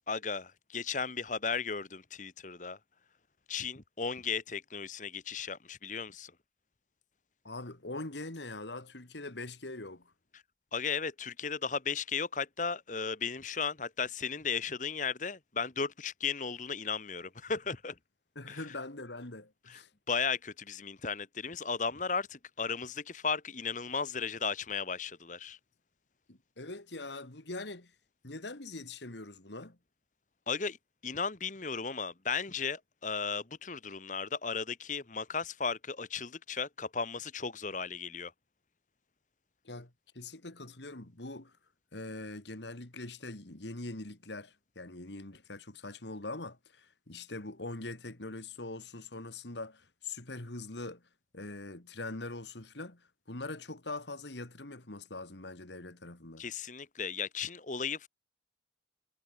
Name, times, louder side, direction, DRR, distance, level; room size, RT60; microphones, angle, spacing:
voice 1, 0.1-2.8 3.5-6.3 10.7-17.9 18.5-18.6 19.7-19.8 20.1-25.6 30.5-30.8 31.0-38.3 56.4-58.1, left 5 dB, 45° left, 1.2 m, -35 dB
voice 2, 7.4-10.1 18.4-19.9 26.3-27.9 28.2-29.8 39.6-41.6 41.9-51.0 51.3-56.4, left 2 dB, 75° left, 2.4 m, -43 dB
head